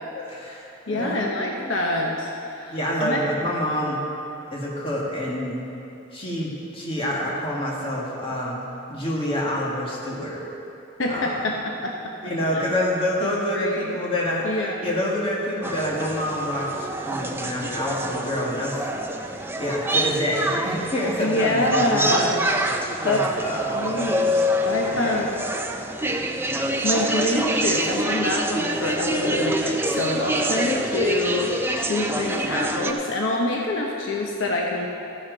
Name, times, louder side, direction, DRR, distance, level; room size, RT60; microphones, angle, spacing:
voice 1, 0.1-1.2 1.5-1.8 2.7-4.0 4.5-5.7 6.1-8.6 8.9-10.4 11.1-11.4 12.2-18.9 19.6-22.3 23.0-24.1 24.9-25.3, equal, 25° left, -4 dB, 1.9 m, -27 dB
voice 2, 0.9-3.2 11.0-12.1 12.5-12.6 13.2-14.0 14.4-14.8 21.2-22.4 23.0-23.3 23.7-25.4 25.9-26.3 26.8-34.9, left 2 dB, 70° left, -1 dB, 0.9 m, -26 dB
sound 1, 15.6-32.9, right 1 dB, 10° right, 0.5 m, -26 dB
14.0 x 10.0 x 4.0 m, 2.9 s
head